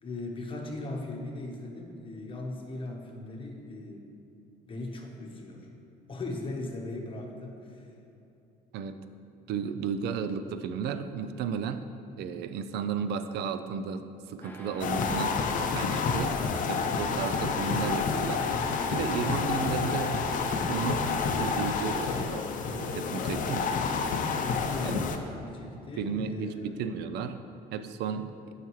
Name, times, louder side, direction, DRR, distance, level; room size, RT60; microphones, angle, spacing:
voice 1, 0.0-4.1 4.6-5.7 6.1-7.9 24.6-26.8, left 2 dB, 30° left, 1 dB, 1.1 m, -39 dB
voice 2, 9.5-11.8 12.2-15.4 15.7-16.4 16.7-18.5 18.9-20.3 20.6-23.8 24.8-25.0 26.0-27.4 27.7-28.3, right 6 dB, 75° right, 10 dB, 0.4 m, -34 dB
sound 1, 14.4-20.6, equal, 10° left, 0.7 m, -45 dB
sound 2, 14.8-25.2, left 5 dB, 50° left, 0.6 m, -29 dB
9.1 x 5.8 x 3.1 m, 2.9 s
cardioid pair, 110°, 17 cm